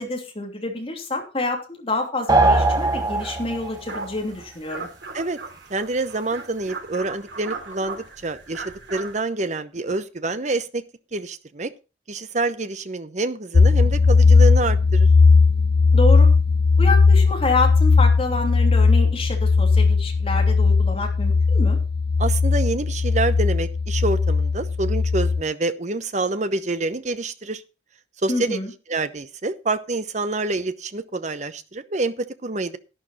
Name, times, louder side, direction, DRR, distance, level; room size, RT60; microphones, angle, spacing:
voice 1, 0.0-4.9 15.9-16.3 16.8-21.8 28.3-28.7, left 2 dB, 35° left, 2 dB, 3.0 m, -27 dB
sound 1, 2.3-3.8, right 2 dB, 20° right, 1.1 m, -19 dB
sound 2, 2.5-9.2, right 3 dB, 90° right, 3.8 m, -38 dB
voice 2, 5.7-10.8 11.1-11.7 12.1-15.1 22.2-27.6 28.2-28.6 28.9-32.8, right 2 dB, 40° right, 12 dB, 1.0 m, -27 dB
sound 3, 13.5-25.4, left 4 dB, 60° left, 0.5 m, -17 dB
11.5 x 11.0 x 4.1 m, 0.31 s
head